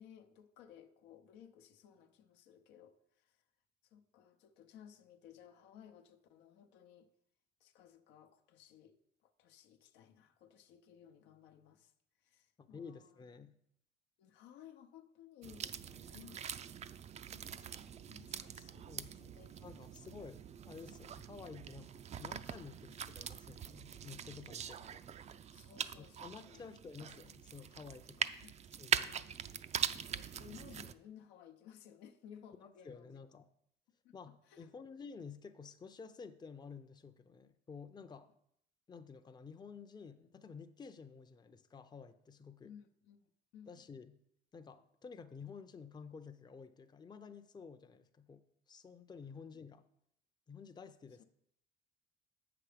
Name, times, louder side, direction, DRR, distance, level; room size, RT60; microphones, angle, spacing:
voice 1, 0.0-3.4 3.8-7.1 7.6-11.9 12.2-13.2 14.2-16.4 17.3-19.6 20.0-20.3 24.8-24.9 25.2-26.6 28.4-28.5 29.0-29.6 29.9-33.2 34.0-34.7 42.6-43.2 43.5-43.9 49.2-49.6 51.2-51.3, left 9 dB, 85° left, 7 dB, 0.8 m, -59 dB
voice 2, 12.6-13.5 18.9-25.0 26.0-28.3 28.8-29.2 32.6-33.5 34.1-38.3 38.9-42.7 43.7-44.2 44.5-49.8 50.5-51.2, left 5 dB, 25° left, 8 dB, 0.6 m, -52 dB
sound 1, 15.4-30.9, right 8 dB, 40° right, 0.4 m, -42 dB
7.9 x 6.0 x 5.0 m, 0.74 s
cardioid pair, 90°, 18 cm